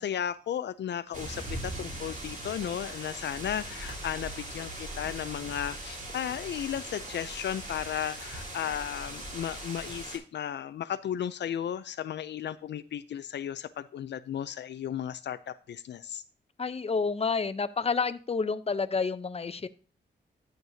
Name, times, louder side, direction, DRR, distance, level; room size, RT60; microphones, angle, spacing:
voice 1, 0.0-16.2, left 9 dB, 75° left, 12 dB, 0.4 m, -35 dB
sound 1, 1.1-10.2, right 1 dB, 45° right, 3.7 m, -40 dB
voice 2, 16.6-19.7, left 4 dB, 35° left, 12 dB, 0.7 m, -29 dB
13.5 x 6.6 x 2.7 m, 0.37 s
cardioid pair, 65°, 18 cm